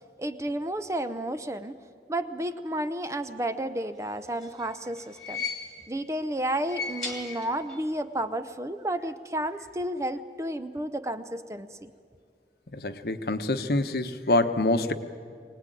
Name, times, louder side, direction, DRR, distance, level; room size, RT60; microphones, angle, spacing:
voice 1, 0.0-1.8 2.1-5.4 5.9-11.9, right 1 dB, 15° right, 11 dB, 0.6 m, -32 dB
sound 1, 4.1-6.0 6.5-7.9 8.2-8.3 9.4-9.5, left 4 dB, ahead, 2.0 m, -37 dB
voice 2, 12.7-14.9, left 2 dB, 60° left, 9 dB, 1.0 m, -26 dB
23.5 x 18.5 x 9.1 m, 2.2 s
head